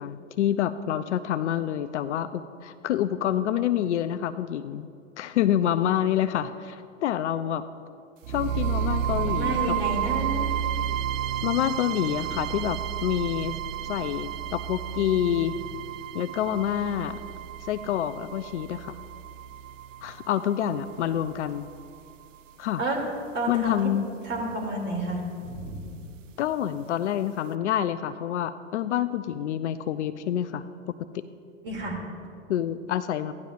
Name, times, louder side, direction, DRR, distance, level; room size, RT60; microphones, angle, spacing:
voice 1, 0.0-4.9 5.2-7.7 8.3-9.7 11.4-13.6 13.8-15.6 16.1-17.2 17.6-19.0 20.0-21.7 22.6-22.8 23.5-24.1 26.4-30.6 32.5-33.3, left 10 dB, 65° left, 11 dB, 0.5 m, -27 dB
sound 1, 8.2-22.2, right 9 dB, 80° right, 0.5 m, -32 dB
voice 2, 9.2-10.5 22.8-23.0 23.3-23.9 24.2-26.0 31.6-32.0, right 1 dB, 30° right, -1 dB, 2.7 m, -30 dB
15.5 x 10.5 x 2.5 m, 2.3 s
hypercardioid pair, 105°, 38 cm